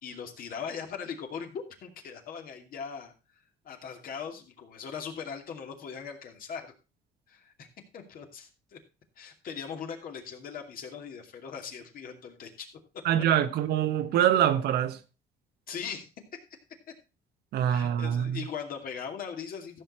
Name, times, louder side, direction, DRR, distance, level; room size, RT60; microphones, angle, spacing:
voice 1, 0.0-3.1 3.6-6.7 7.3-7.7 7.9-8.8 9.2-12.7 15.7-16.1 17.6-19.8, left 6 dB, 60° left, 2.5 m, -40 dB
voice 2, 13.0-15.0 17.5-18.4, right 10 dB, 70° right, 1.1 m, -25 dB
14.5 x 6.5 x 4.2 m
cardioid pair, 110°, 17 cm